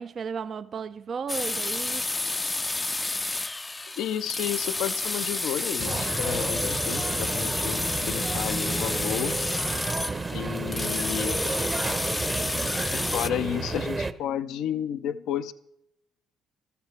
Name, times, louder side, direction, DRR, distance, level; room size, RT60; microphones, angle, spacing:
voice 1, 0.0-2.0, right 6 dB, 50° right, 0.4 m, -34 dB
sound 1, 1.3-13.3, left 2 dB, 20° left, 0.4 m, -30 dB
voice 2, 4.0-9.4 10.3-11.6 12.9-15.5, left 10 dB, 75° left, 0.5 m, -32 dB
sound 2, 5.8-14.1, right 3 dB, 30° right, 0.8 m, -31 dB
15.0 x 13.5 x 3.2 m
supercardioid pair, 60°, 0 cm